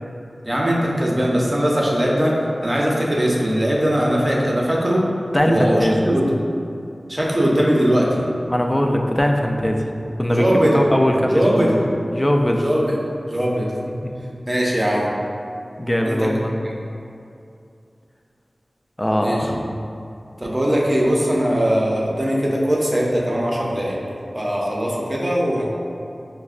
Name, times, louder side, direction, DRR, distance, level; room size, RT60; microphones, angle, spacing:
voice 1, 0.4-5.0 5.4-6.3 7.1-8.2 10.3-10.8 11.3-11.9 12.6-13.0 13.3-13.7 14.5-15.1 16.0-16.3 19.2-19.5 20.4-24.0 24.3-25.7, equal, 25° right, -3 dB, 0.6 m, -20 dB
voice 2, 5.3-6.1 8.5-9.9 10.2-11.7 12.1-12.7 14.0-14.1 15.8-16.5 19.0-19.6, equal, 15° left, 2 dB, 0.3 m, -20 dB
5.5 x 2.1 x 2.4 m, 2.6 s
wide cardioid pair, 65°, 0 cm